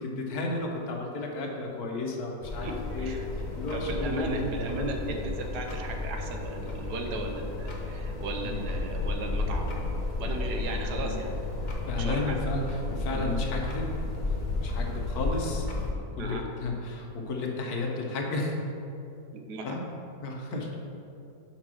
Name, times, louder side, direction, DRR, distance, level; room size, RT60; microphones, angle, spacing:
voice 1, 0.0-3.1 3.5-4.5 4.8-4.9 8.4-8.6 10.9-11.1 11.8-14.1 14.6-15.7 16.2-18.6 19.6-19.8 20.2-20.7, left 2 dB, 65° left, 0 dB, 1.4 m, -33 dB
sound 1, 2.4-15.9, left 2 dB, 35° left, 0.8 m, -33 dB
voice 2, 3.7-9.7 10.2-12.4 13.1-13.2 16.2-16.4 19.3-19.8, right 2 dB, 70° right, 3 dB, 1.3 m, -36 dB
5.9 x 5.2 x 6.0 m, 2.7 s
omnidirectional pair, 1.9 m